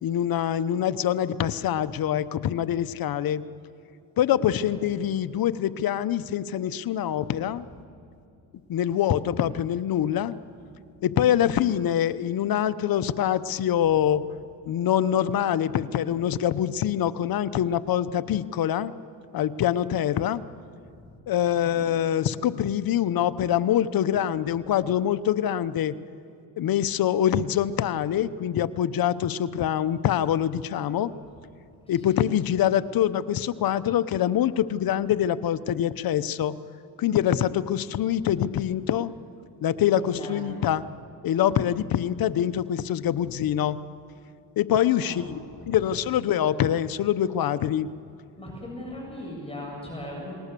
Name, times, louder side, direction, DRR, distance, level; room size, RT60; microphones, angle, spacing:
voice 1, 0.0-3.4 4.2-7.6 8.7-10.4 11.0-14.2 14.7-18.9 19.3-20.4 21.3-25.9 26.6-31.1 31.9-36.6 37.0-39.1 39.6-40.8 41.2-43.8 44.6-45.4 45.7-47.9, left 10 dB, 60° left, 13 dB, 0.9 m, -24 dB
voice 2, 31.9-32.3 39.9-40.5 45.0-45.8 48.4-50.3, left 1 dB, 15° left, -2 dB, 7.3 m, -39 dB
29.0 x 20.0 x 6.9 m, 2.5 s
cardioid pair, 90°, 41 cm